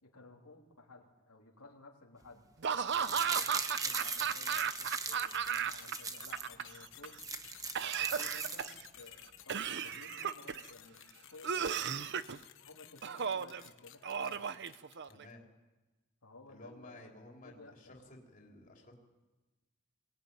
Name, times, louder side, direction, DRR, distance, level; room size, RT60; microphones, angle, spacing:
voice 1, 0.0-2.5 2.9-7.2 7.7-12.1 12.6-14.5 16.2-17.1 17.4-17.9, left 2 dB, 85° left, 0 dB, 3.2 m, -56 dB
Laughter / Cough, 2.6-5.9 6.2-7.1 7.8-8.9 9.5-10.7 11.4-12.4 13.0-13.6 14.0-15.2, right 7 dB, 50° right, 0.7 m, -35 dB
sound 1, 2.8-6.5 6.9-7.0 7.1-9.0 9.4-9.5, right 4 dB, 15° right, 1.1 m, -39 dB
sound 2, 3.7-15.3, left 11 dB, 60° left, 1.3 m, -55 dB
voice 2, 15.1-15.4 16.5-18.9, left 2 dB, 35° left, 0 dB, 3.9 m, -54 dB
23.0 x 19.0 x 9.6 m, 1.2 s
head